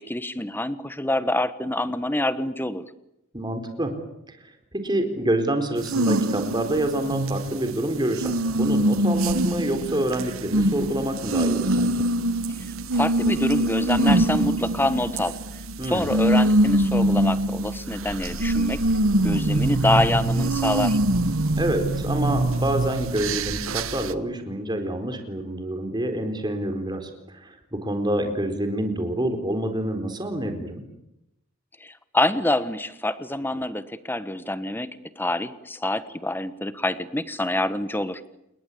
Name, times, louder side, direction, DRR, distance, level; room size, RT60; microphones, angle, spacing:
voice 1, 0.0-2.8 12.9-15.4 15.8-18.8 19.2-21.0 31.8-34.9 35.2-38.2, left 1 dB, 10° left, 13 dB, 1.3 m, -26 dB
voice 2, 3.3-3.9 4.8-12.0 15.8-16.2 21.6-27.6 27.8-30.8, right 1 dB, 20° right, 6 dB, 4.2 m, -27 dB
sound 1, 5.8-24.1, right 1 dB, 75° right, 1.2 m, -24 dB
sound 2, 18.1-23.6, left 1 dB, 85° left, 2.7 m, -39 dB
29.0 x 21.0 x 8.6 m, 0.84 s
head